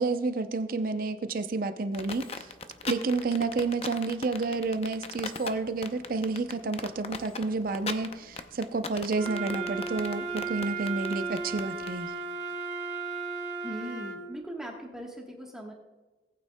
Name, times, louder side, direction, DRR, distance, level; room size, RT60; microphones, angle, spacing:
voice 1, 0.0-2.3 2.8-12.1, right 3 dB, 55° right, 10 dB, 0.6 m, -30 dB
sound 1, 1.9-11.9, left 5 dB, 35° left, 0.6 m, -38 dB
Wind instrument woodwind instrument, 9.1-14.3, right 4 dB, 75° right, 1.6 m, -35 dB
voice 2, 13.6-15.7, equal, 5° right, -1 dB, 1.2 m, -40 dB
18.5 x 8.9 x 2.2 m, 1.2 s
head